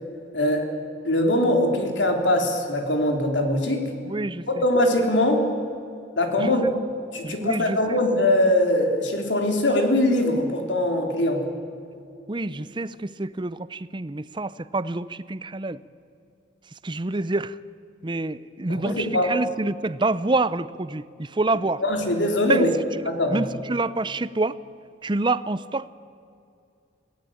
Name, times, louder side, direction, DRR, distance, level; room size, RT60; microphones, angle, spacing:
voice 1, 0.3-0.7 1.0-3.8 4.5-5.4 6.2-6.6 7.1-11.4 18.8-19.3 21.8-22.7 23.2-23.4, left 1 dB, 90° left, 3 dB, 3.6 m, -22 dB
voice 2, 4.1-4.4 6.4-6.7 7.2-8.0 12.3-15.8 16.8-17.6 18.0-21.8 22.5-22.7 23.3-24.6 25.0-25.9, right 2 dB, 25° right, 16 dB, 0.6 m, -27 dB
27.0 x 18.0 x 8.7 m, 2.5 s
head